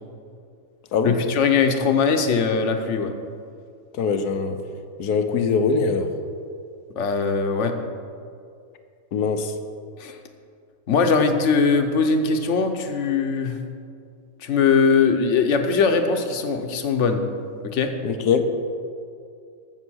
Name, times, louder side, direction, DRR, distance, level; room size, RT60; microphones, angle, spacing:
voice 1, 1.0-3.1 7.0-7.7 10.0-10.2 10.9-13.6 14.4-17.2 17.6-17.9, left 5 dB, 55° left, 6 dB, 1.2 m, -21 dB
voice 2, 4.0-4.6 5.0-6.1 9.1-9.5 18.0-18.4, left 5 dB, 80° left, 8 dB, 1.4 m, -22 dB
15.0 x 6.6 x 6.3 m, 2.4 s
omnidirectional pair, 1.6 m